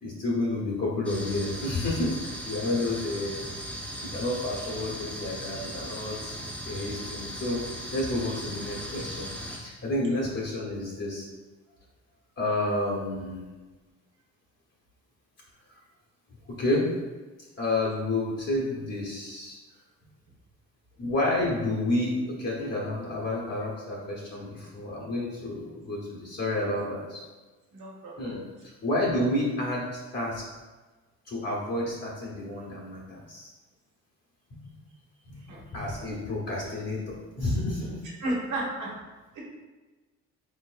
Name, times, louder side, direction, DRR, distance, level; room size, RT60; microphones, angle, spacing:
voice 1, 0.0-3.4 4.0-6.3 6.6-7.6 7.9-11.2 12.4-13.5 16.6-16.9 17.6-19.5 21.0-27.2 28.2-28.5 28.8-29.9 30.1-30.4 31.3-33.5 34.5-34.6 35.3-38.0, left 1 dB, 55° left, -4 dB, 1.2 m, -30 dB
sound 1, 1.0-9.6, equal, 5° left, 0.9 m, -38 dB
voice 2, 27.7-28.1 35.5-35.6 38.2-38.9, right 1 dB, 80° right, -4 dB, 1.3 m, -31 dB
4.4 x 3.5 x 2.5 m, 1.2 s
cardioid pair, 90°, 30 cm